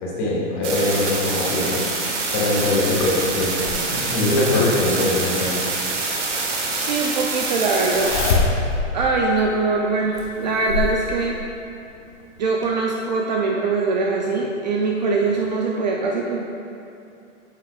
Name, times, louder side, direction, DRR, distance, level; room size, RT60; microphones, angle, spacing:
voice 1, 0.0-1.8 2.3-5.5, left 2 dB, 25° left, -6 dB, 1.7 m, -23 dB
sound 1, 0.6-8.3, right 3 dB, 65° right, 1.7 m, -26 dB
Zipper (clothing), 3.0-4.8 6.2-6.3 7.9-8.9 9.4-9.5 10.2-11.0 12.2-12.3 12.6-12.7, left 4 dB, 45° left, 1.1 m, -23 dB
voice 2, 6.7-8.6 8.9-11.4 12.4-16.4, right 3 dB, 35° right, -1 dB, 0.5 m, -22 dB
8.4 x 7.4 x 2.4 m, 2.6 s
hypercardioid pair, 160°, 38 cm